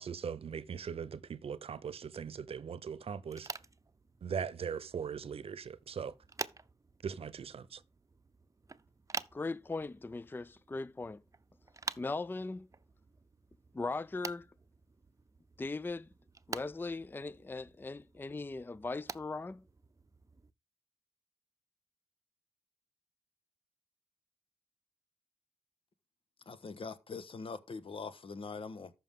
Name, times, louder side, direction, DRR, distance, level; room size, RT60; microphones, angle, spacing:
voice 1, 0.0-3.5 4.2-6.1 7.0-7.8, right 7 dB, 75° right, 0.7 m, -40 dB
sound 1, 3.2-20.5, right 3 dB, 35° right, 0.7 m, -48 dB
voice 2, 9.3-11.2 12.0-12.7 13.7-14.5 15.6-16.1 16.5-19.6, left 3 dB, 20° left, 0.4 m, -39 dB
voice 3, 26.5-28.9, left 4 dB, 65° left, 1.2 m, -43 dB
13.5 x 5.8 x 3.7 m
cardioid pair, 45°, 10 cm